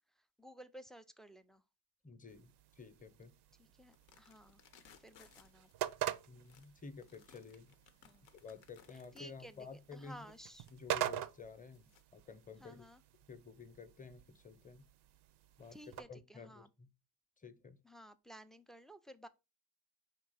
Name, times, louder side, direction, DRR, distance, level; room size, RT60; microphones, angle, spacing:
voice 1, 0.2-1.6 3.6-4.6 5.0-5.7 8.0-8.3 9.1-10.7 12.6-13.0 15.7-16.7 17.8-19.3, equal, ahead, 0.3 m, -55 dB
voice 2, 2.0-3.3 6.3-7.7 8.3-10.3 10.7-12.9 13.3-14.9 15.6-16.9 17.4-17.8, left 5 dB, 20° left, 0.7 m, -52 dB
sound 1, 2.3-16.0, right 12 dB, 65° right, 0.5 m, -46 dB
sound 2, 3.9-12.0, left 8 dB, 80° left, 0.7 m, -65 dB
4.5 x 2.9 x 4.0 m
supercardioid pair, 60°, 43 cm